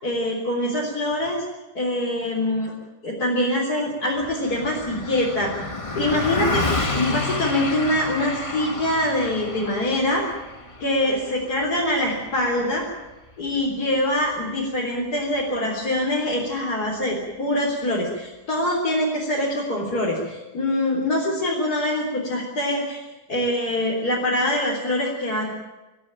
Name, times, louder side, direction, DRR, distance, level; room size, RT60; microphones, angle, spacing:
voice 1, 0.0-1.4 1.7-2.7 3.0-5.6 5.9-10.2 10.8-12.8 13.4-25.5, left 1 dB, 70° left, -4 dB, 4.4 m, -24 dB
Car passing by, 4.2-13.8, left 3 dB, 20° left, 1.7 m, -30 dB
24.5 x 15.0 x 9.1 m, 1.1 s
omnidirectional pair, 1.7 m